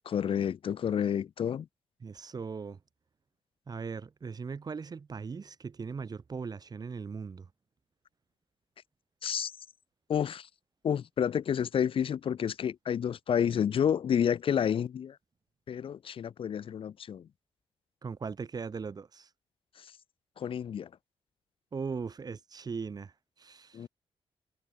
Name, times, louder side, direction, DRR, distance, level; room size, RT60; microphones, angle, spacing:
voice 1, 0.0-1.7 9.2-9.5 10.1-10.5 10.8-15.2 15.7-17.3 19.8-19.9 20.4-20.9 23.7-23.9, left 8 dB, 60° left, 1.0 m, -30 dB
voice 2, 2.0-2.8 3.7-7.5 18.0-19.3 21.7-23.9, right 5 dB, 40° right, 3.6 m, -39 dB
cardioid pair, 110°, 10 cm